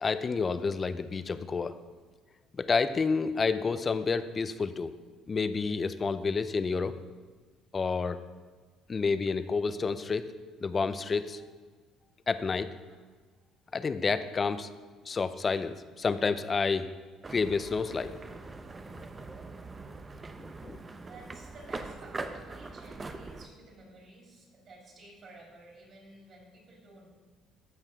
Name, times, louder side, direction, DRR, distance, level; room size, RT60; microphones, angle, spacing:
voice 1, 0.0-1.8 2.6-4.9 5.3-6.9 7.7-8.2 8.9-10.3 10.6-11.4 12.3-12.7 13.7-14.7 15.1-16.9 17.3-18.1 20.6-20.8, left 4 dB, 30° left, 13 dB, 0.5 m, -29 dB
sound 1, 17.2-23.5, right 3 dB, 20° right, 0.7 m, -42 dB
voice 2, 20.9-27.1, right 2 dB, 45° right, -1 dB, 3.6 m, -53 dB
14.5 x 6.1 x 4.5 m, 1.4 s
cardioid pair, 120°, 0 cm